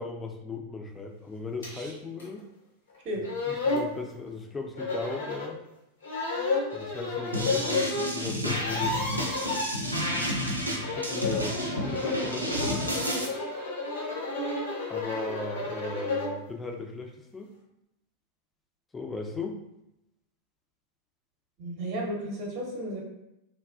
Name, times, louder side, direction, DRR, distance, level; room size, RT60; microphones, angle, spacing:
voice 1, 0.0-2.4 3.5-5.6 6.7-9.2 10.1-10.3 10.6-13.0 14.9-17.5 18.9-19.6, left 3 dB, 10° left, 2 dB, 0.4 m, -37 dB
sound 1, 1.6-1.7 2.2-2.3 2.9-3.0 3.2-3.9 4.8-5.5 6.0-8.1 8.4-9.7 10.7-16.4, left 3 dB, 70° left, 0.7 m, -31 dB
sound 2, 7.3-13.2, equal, 85° right, 0.4 m, -31 dB
voice 2, 21.6-23.0, right 1 dB, 40° right, -1 dB, 0.7 m, -34 dB
3.0 x 2.3 x 2.4 m, 0.86 s
figure-of-eight pair, 90°, 0 cm